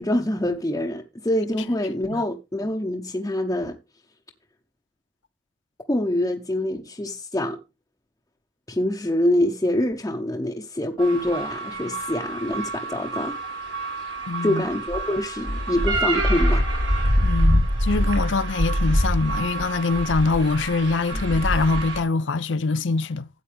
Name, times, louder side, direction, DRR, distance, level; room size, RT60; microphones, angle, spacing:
voice 1, 0.0-3.8 5.9-7.6 8.7-13.4 14.4-16.7 21.1-21.2, left 1 dB, 15° left, 0.9 m, -25 dB
sound 1, 11.0-22.0, equal, 80° right, 4.8 m, -25 dB
voice 2, 14.3-14.6 17.2-23.3, left 3 dB, 70° left, 0.6 m, -24 dB
13.0 x 8.3 x 3.5 m
head